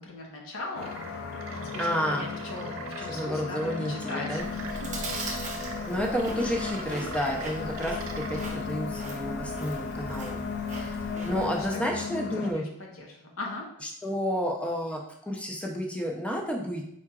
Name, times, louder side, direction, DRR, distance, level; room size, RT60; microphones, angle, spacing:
voice 1, 0.0-4.9 11.0-13.7, left 2 dB, 75° left, -1 dB, 1.1 m, -40 dB
sound 1, 0.8-12.5, left 5 dB, 50° left, 0.4 m, -35 dB
sound 2, 0.8-8.7, right 5 dB, 75° right, 0.5 m, -44 dB
voice 2, 1.8-2.3 3.1-4.4 5.5-10.4 10.7-11.0 11.3-12.6 14.0-16.8, equal, 5° left, 0 dB, 0.6 m, -31 dB
Chewing mastication, 4.4-11.7, right 2 dB, 35° right, 0.8 m, -40 dB
4.7 x 4.3 x 2.4 m, 0.74 s
head